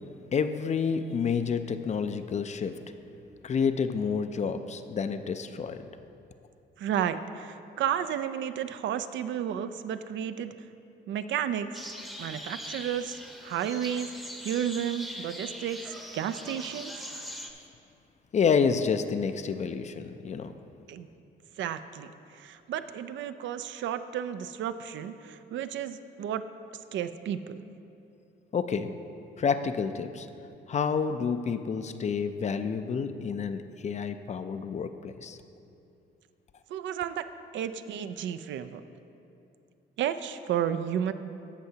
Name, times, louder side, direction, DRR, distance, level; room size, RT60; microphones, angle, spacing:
voice 1, 0.3-2.8 3.4-5.8 18.3-20.5 28.5-29.0 29.4-30.3 30.7-35.4, left 6 dB, 35° left, 10 dB, 0.4 m, -29 dB
voice 2, 6.8-10.5 11.1-11.8 12.2-14.1 14.4-15.8 16.1-17.0 20.9-21.1 21.6-26.4 26.9-27.6 36.7-37.2 37.5-38.8 40.0-41.1, right 9 dB, 70° right, 11 dB, 0.4 m, -32 dB
sound 1, 11.7-17.5, equal, ahead, 0.8 m, -41 dB
15.5 x 5.6 x 2.8 m, 2.8 s
cardioid pair, 90°, 20 cm